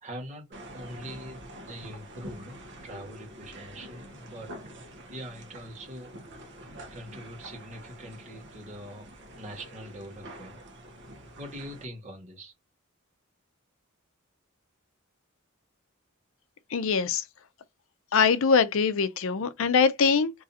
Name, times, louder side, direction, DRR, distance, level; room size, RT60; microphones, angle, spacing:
voice 1, 0.0-0.5 0.7-4.7 5.1-6.6 6.9-10.7 11.4-12.5, equal, 35° right, 1.7 m, -43 dB
sound 1, 0.5-11.8, right 1 dB, 60° right, 1.1 m, -46 dB
voice 2, 16.7-17.2 18.1-20.3, left 5 dB, 70° left, 0.5 m, -23 dB
3.7 x 3.1 x 2.7 m
head